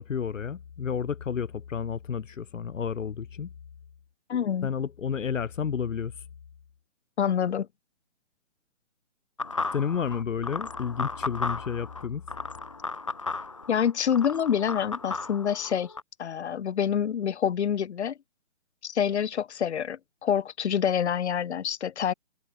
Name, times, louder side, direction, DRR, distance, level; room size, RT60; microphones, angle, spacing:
voice 1, 0.0-3.5 4.6-6.3 9.7-12.2, left 7 dB, 85° left, 1.2 m, -31 dB
voice 2, 4.3-4.7 7.2-7.7 13.7-15.9 16.2-18.1 18.8-22.1, left 8 dB, 60° left, 0.6 m, -27 dB
sound 1, 9.4-16.0, left 3 dB, 25° left, 0.7 m, -35 dB
open air
hypercardioid pair, 180°, 37 cm